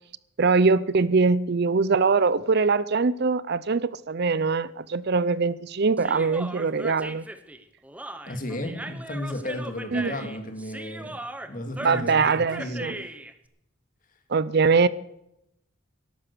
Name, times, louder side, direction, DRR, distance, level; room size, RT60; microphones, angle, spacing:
voice 1, 0.4-7.2 9.9-10.1 11.8-13.0 14.3-14.9, right 4 dB, 55° right, 0.5 m, -22 dB
Human voice, 6.0-13.3, right 1 dB, 5° right, 0.8 m, -38 dB
voice 2, 8.3-11.2 11.5-12.9, left 1 dB, 40° left, 2.3 m, -34 dB
13.0 x 11.5 x 6.7 m
head